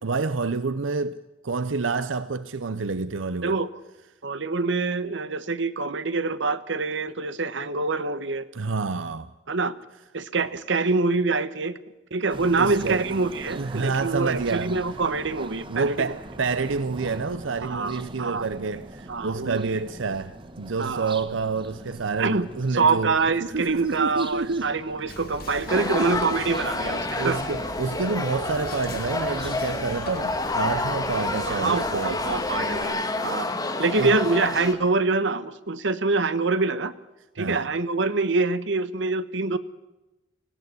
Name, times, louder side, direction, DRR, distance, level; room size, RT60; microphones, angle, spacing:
voice 1, 0.0-1.2 1.4-3.6 8.5-9.3 12.6-13.1 13.5-14.8 15.7-24.7 25.7-26.4 27.2-32.4 33.9-34.2 37.4-37.7, right 4 dB, 90° right, 0.7 m, -28 dB
voice 2, 4.2-8.5 9.5-9.7 10.1-11.8 12.1-16.1 17.6-18.4 19.1-19.7 20.8-21.1 22.2-22.5 22.7-27.4 31.5-33.5 33.8-36.9 37.4-39.6, right 3 dB, 70° right, 1.2 m, -25 dB
sound 1, 12.3-31.4, right 1 dB, 25° right, 1.2 m, -43 dB
Whispering, 25.1-32.8, left 2 dB, 55° left, 3.2 m, -42 dB
sound 2, 25.7-34.7, left 2 dB, 20° left, 1.9 m, -29 dB
18.5 x 16.0 x 9.5 m
head